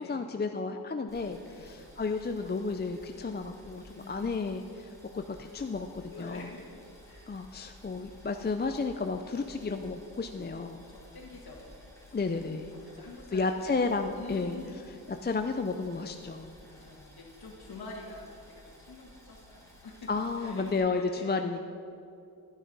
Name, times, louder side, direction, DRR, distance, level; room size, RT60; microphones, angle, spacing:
voice 1, 0.0-1.4 1.6-6.5 7.3-10.8 12.1-12.7 13.3-14.6 15.2-16.5 20.1-21.7, left 4 dB, 30° left, 6 dB, 0.5 m, -32 dB
Boiling, 1.1-20.8, equal, 10° left, 3.0 m, -54 dB
voice 2, 4.0-4.3 6.1-7.3 10.8-11.6 12.7-13.8 14.1-15.0 16.6-20.1 20.3-21.4, left 3 dB, 80° left, -3 dB, 1.8 m, -47 dB
11.0 x 10.5 x 5.4 m, 2.5 s
wide cardioid pair, 95°, 37 cm